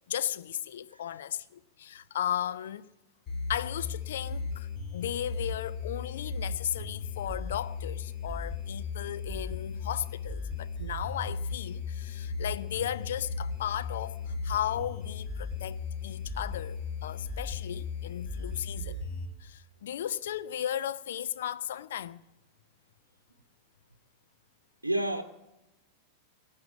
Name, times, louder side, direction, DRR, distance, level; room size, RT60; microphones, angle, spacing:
voice 1, 0.1-2.9 3.5-19.0 19.4-22.2, left 10 dB, 60° left, 0.6 m, -35 dB
voice 2, 0.9-1.2 24.8-25.2, right 1 dB, 80° right, 0.8 m, -30 dB
sound 1, 3.3-19.3, left 4 dB, 30° left, 3.2 m, -36 dB
18.5 x 8.6 x 7.3 m
figure-of-eight pair, 90°, 0 cm